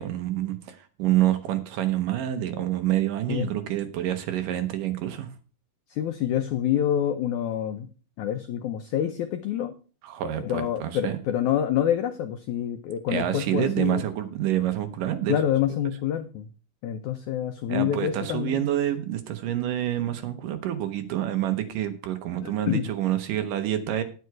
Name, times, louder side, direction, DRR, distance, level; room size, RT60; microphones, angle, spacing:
voice 1, 0.0-5.3 10.0-11.2 13.1-15.4 17.7-24.0, right 12 dB, 70° right, 9 dB, 2.2 m, -27 dB
voice 2, 5.9-7.9 8.2-9.7 10.4-14.0 15.3-16.5 16.8-18.7 22.4-22.8, left 10 dB, 90° left, 7 dB, 1.6 m, -27 dB
9.5 x 9.3 x 4.6 m, 0.37 s
omnidirectional pair, 4.4 m